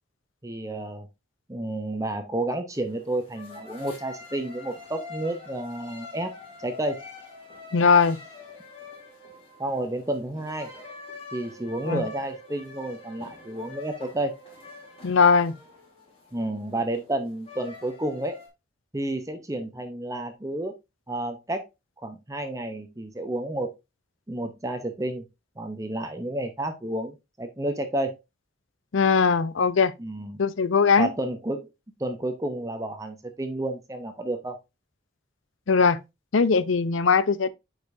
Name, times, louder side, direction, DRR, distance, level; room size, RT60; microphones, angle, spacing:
voice 1, 0.4-1.1 1.5-6.3 6.6-7.0 9.6-10.7 11.3-14.4 16.3-18.4 18.9-20.7 21.1-21.7 22.0-23.7 24.3-25.2 25.6-28.2 30.0-30.4 31.0-31.7 32.0-34.6, right 1 dB, 15° right, 0.7 m, -31 dB
sound 1, 2.7-18.5, left 3 dB, 30° left, 2.9 m, -45 dB
voice 2, 7.7-8.2 11.8-12.0 15.0-15.6 28.9-29.9 30.4-31.1 35.7-36.0 36.3-37.5, left 5 dB, 80° left, 0.6 m, -20 dB
8.3 x 5.0 x 2.6 m
head